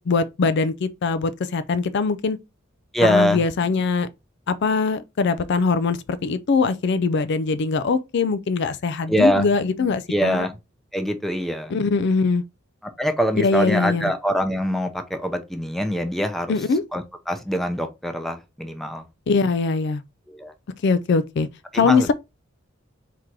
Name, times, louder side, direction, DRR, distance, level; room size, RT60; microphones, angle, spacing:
voice 1, 0.0-2.4 3.0-4.1 4.5-10.5 11.7-12.4 13.4-14.1 16.5-16.8 19.3-20.0 20.8-21.5 21.7-22.1, left 4 dB, 60° left, 0.4 m, -22 dB
voice 2, 2.9-3.4 9.1-9.5 10.1-10.5 10.9-11.7 13.0-16.5 16.9-19.0 20.3-20.5 21.7-22.1, equal, ahead, 0.6 m, -23 dB
3.7 x 2.9 x 4.5 m
head